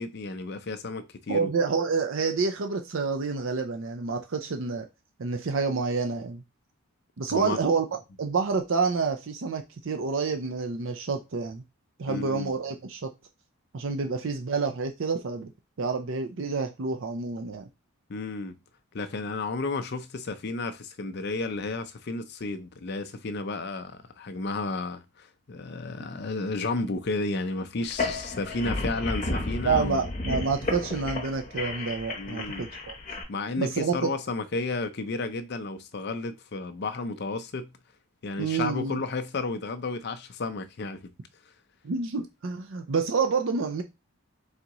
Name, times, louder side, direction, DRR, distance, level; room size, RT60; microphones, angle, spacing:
voice 1, 0.0-1.5 7.3-7.6 12.1-12.5 18.1-18.6 18.9-30.0 32.2-32.7 33.3-37.7 38.2-41.1, left 3 dB, 50° left, 0.5 m, -32 dB
voice 2, 1.3-4.9 5.2-6.4 7.2-7.9 8.2-11.6 12.0-13.1 13.7-15.5 15.8-17.7 29.6-32.9 33.6-34.1 38.4-39.0 41.8-43.8, right 4 dB, 60° right, 0.5 m, -28 dB
sound 1, 27.8-33.2, left 2 dB, 35° left, 0.9 m, -32 dB
3.9 x 3.5 x 2.9 m
head